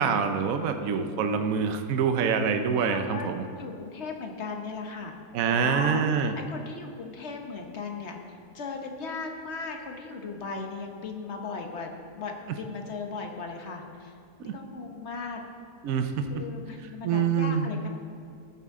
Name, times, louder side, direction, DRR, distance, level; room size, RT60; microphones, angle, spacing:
voice 1, 0.0-3.4 5.3-6.3 14.4-14.5 15.8-16.3 17.0-17.7, right 6 dB, 65° right, 7 dB, 1.0 m, -25 dB
voice 2, 2.9-3.3 3.6-5.1 5.5-6.0 6.4-8.2 8.5-11.9 12.2-14.1 14.4-15.4 16.3-17.9, left 4 dB, 50° left, 3 dB, 1.1 m, -37 dB
13.5 x 8.5 x 3.6 m, 2.3 s
omnidirectional pair, 1.7 m